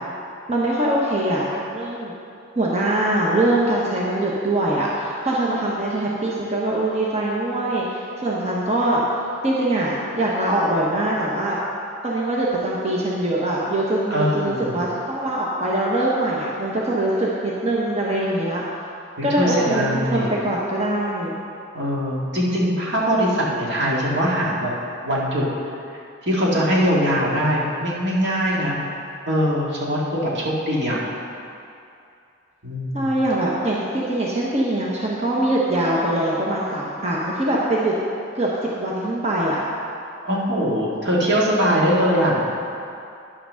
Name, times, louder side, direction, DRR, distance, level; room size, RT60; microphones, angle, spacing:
voice 1, 0.5-2.1 2.6-9.0 9.4-11.6 12.0-18.6 19.2-21.4 32.9-37.9 38.3-39.6, right 1 dB, 35° right, -4 dB, 1.0 m, -23 dB
voice 2, 14.1-14.7 19.2-20.3 21.7-24.7 25.0-25.4 26.2-28.8 29.3-31.0 32.6-33.2 40.2-42.4, equal, 60° right, -5 dB, 2.0 m, -21 dB
9.8 x 5.9 x 6.3 m, 2.6 s
head